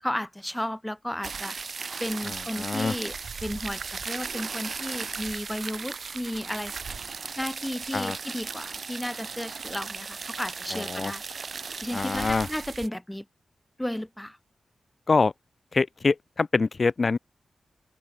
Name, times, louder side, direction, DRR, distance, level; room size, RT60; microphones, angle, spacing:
voice 1, 0.0-1.6 2.0-3.1 3.4-6.7 7.4-11.2 11.8-13.3 13.8-14.4, left 1 dB, 5° left, 1.9 m, -33 dB
sound 1, 1.2-12.9, right 5 dB, 55° right, 0.8 m, -36 dB
voice 2, 2.2-2.9 7.9-8.2 10.7-11.1 11.9-12.5 15.1-15.3 15.7-17.2, left 4 dB, 45° left, 0.6 m, -25 dB
cardioid pair, 80°, 0 cm